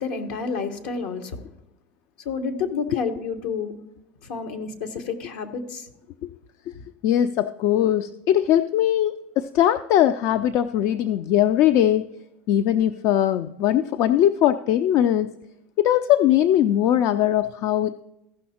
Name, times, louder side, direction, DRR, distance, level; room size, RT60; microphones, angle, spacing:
voice 1, 0.0-1.4 2.2-3.7 4.2-5.9, left 5 dB, 70° left, 1.2 m, -29 dB
voice 2, 7.0-12.1 12.5-15.3 15.8-18.0, left 11 dB, 55° left, 0.4 m, -20 dB
15.0 x 5.7 x 4.2 m
hypercardioid pair, 85°, 6 cm